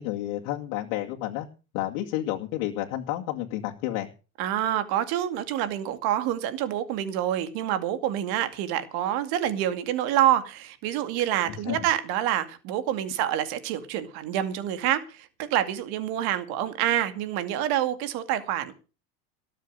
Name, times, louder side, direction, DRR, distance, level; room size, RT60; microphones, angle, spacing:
voice 1, 0.0-1.5 1.7-4.1 11.4-11.8, left 14 dB, 65° left, 2.3 m, -31 dB
voice 2, 4.4-18.7, right 11 dB, 60° right, 2.4 m, -27 dB
18.5 x 7.5 x 6.7 m
supercardioid pair, 125°, 41 cm